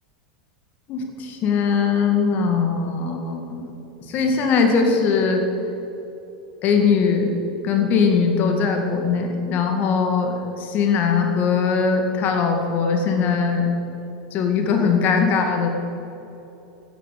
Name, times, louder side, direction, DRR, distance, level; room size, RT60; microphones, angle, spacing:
voice 1, 0.9-3.7 4.1-5.4 6.6-7.3 7.6-13.7 14.3-15.7, left 5 dB, 45° left, 4 dB, 2.0 m, -20 dB
14.0 x 10.0 x 6.8 m, 3.0 s
hypercardioid pair, 100°, 4 cm